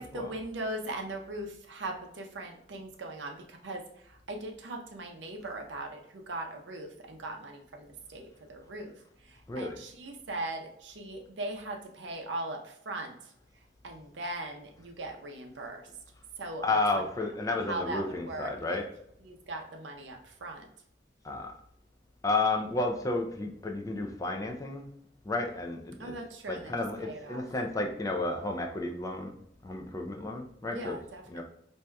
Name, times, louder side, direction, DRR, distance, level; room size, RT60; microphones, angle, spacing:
voice 1, 0.0-8.9 9.2-13.3 13.8-15.8 16.4-16.8 17.5-18.8 19.2-20.7 26.0-27.4 30.7-31.4, right 2 dB, 80° right, 3 dB, 0.6 m, -39 dB
voice 2, 16.6-18.9 21.2-21.5 22.2-24.9 25.2-26.1 26.5-29.4 29.6-31.0 31.3-31.4, left 2 dB, 20° left, 2 dB, 0.4 m, -32 dB
4.5 x 2.7 x 2.2 m, 0.72 s
head